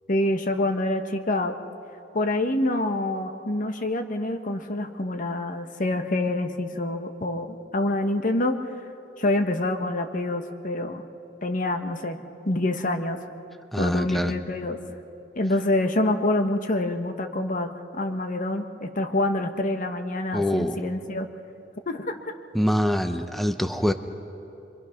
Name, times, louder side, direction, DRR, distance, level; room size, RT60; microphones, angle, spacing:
voice 1, 0.1-1.5 2.1-8.6 9.2-11.1 11.4-12.2 12.4-13.2 13.7-14.8 15.4-21.3 21.9-22.3, left 1 dB, 45° left, 6 dB, 1.3 m, -26 dB
voice 2, 13.7-14.4 20.3-20.8 22.5-23.9, equal, ahead, 7 dB, 0.8 m, -24 dB
26.5 x 24.0 x 5.9 m, 2.8 s
head